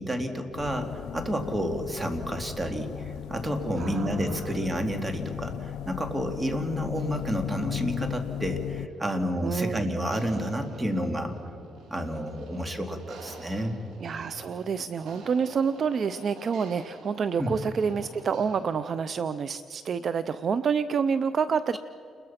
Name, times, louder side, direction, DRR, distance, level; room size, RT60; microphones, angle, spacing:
voice 1, 0.0-11.4 11.9-13.8 17.4-17.5, equal, 20° right, 5 dB, 2.9 m, -30 dB
sound 1, 0.5-8.9, left 11 dB, 85° left, 0.4 m, -36 dB
voice 2, 3.8-4.5 9.4-9.9 14.0-21.8, right 6 dB, 50° right, 13 dB, 0.6 m, -28 dB
sound 2, 7.0-19.2, right 3 dB, 80° right, 3.7 m, -50 dB
29.5 x 21.5 x 5.9 m, 2.7 s
cardioid pair, 90°, 0 cm